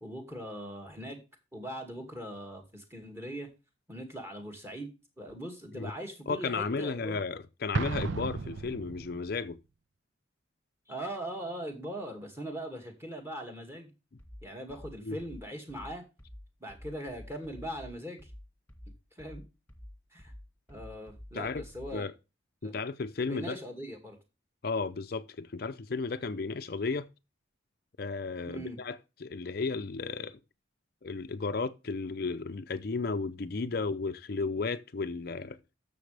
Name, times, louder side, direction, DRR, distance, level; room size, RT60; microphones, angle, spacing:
voice 1, 0.0-1.2 1.5-3.5 3.9-7.2 10.9-13.9 14.4-16.0 16.6-18.3 19.2-19.4 20.1-20.3 20.7-22.0 22.6-22.7 23.3-24.2 28.5-28.8, right 1 dB, 15° right, 2.2 m, -40 dB
voice 2, 6.3-9.6 15.0-15.2 21.3-21.6 21.9-22.1 22.6-23.6 24.6-27.1 28.0-30.4 31.0-35.6, left 4 dB, 50° left, 0.5 m, -34 dB
Explosion, 7.7-9.4, right 4 dB, 75° right, 0.5 m, -34 dB
sound 1, 14.2-22.0, left 1 dB, 10° left, 2.0 m, -49 dB
11.5 x 6.9 x 3.4 m
head